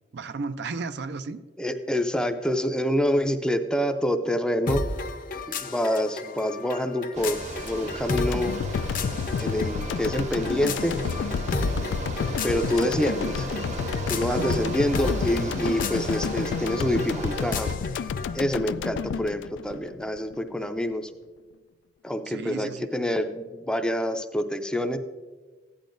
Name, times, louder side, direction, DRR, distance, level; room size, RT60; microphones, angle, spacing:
voice 1, 0.1-1.4 14.3-14.8 22.3-22.9, right 4 dB, 65° right, 0.4 m, -33 dB
voice 2, 1.6-4.8 5.5-7.4 7.6-8.5 9.4-11.0 12.4-13.5 14.1-17.7 18.3-21.1 22.0-25.0, equal, 5° left, 0.5 m, -26 dB
sound 1, 4.7-18.4, left 3 dB, 50° left, 0.7 m, -34 dB
Bicycle, 7.1-17.7, right 2 dB, 40° right, 0.9 m, -36 dB
sound 2, 8.2-20.4, left 6 dB, 90° left, 0.3 m, -30 dB
15.0 x 10.0 x 2.6 m
head